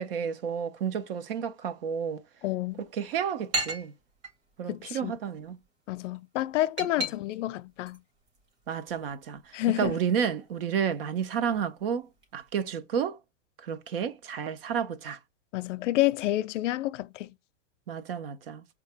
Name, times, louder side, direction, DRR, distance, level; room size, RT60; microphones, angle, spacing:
voice 1, 0.0-2.2 2.8-3.9 4.6-5.6 7.0-7.1 8.7-9.4 9.8-12.1 12.3-13.2 13.6-15.2 17.9-18.6, right 7 dB, 50° right, 0.6 m, -31 dB
voice 2, 2.4-2.8 4.7-5.1 5.9-8.0 9.5-9.9 15.5-17.3, left 15 dB, 80° left, 0.5 m, -29 dB
sound 1, 2.7-12.7, right 1 dB, 65° right, 3.3 m, -41 dB
4.7 x 2.8 x 3.3 m
supercardioid pair, 175°, 36 cm